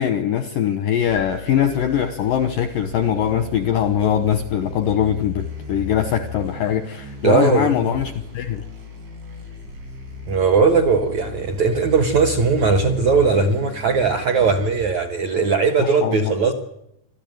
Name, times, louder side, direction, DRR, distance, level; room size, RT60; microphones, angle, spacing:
voice 1, 0.0-8.6 15.8-16.3, left 9 dB, 75° left, 2.0 m, -22 dB
sound 1, 1.1-14.8, left 4 dB, 85° right, 7.8 m, -36 dB
voice 2, 7.2-7.9 10.3-16.5, right 4 dB, 65° right, 1.8 m, -19 dB
27.0 x 13.5 x 9.2 m
omnidirectional pair, 5.3 m